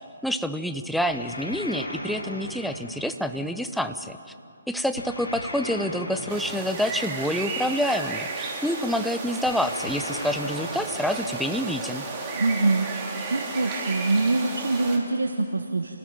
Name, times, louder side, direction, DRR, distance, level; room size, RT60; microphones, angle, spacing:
voice 1, 0.2-4.2 4.7-12.0, equal, ahead, 8 dB, 0.8 m, -27 dB
sound 1, 1.1-3.7 5.0-7.5 9.5-12.0, left 1 dB, 70° left, 4.7 m, -37 dB
sound 2, 6.3-15.0, right 3 dB, 20° right, 3.5 m, -33 dB
voice 2, 12.4-16.0, right 2 dB, 65° right, 6 dB, 1.5 m, -25 dB
28.5 x 18.5 x 9.2 m, 2.6 s
figure-of-eight pair, 140°, 0 cm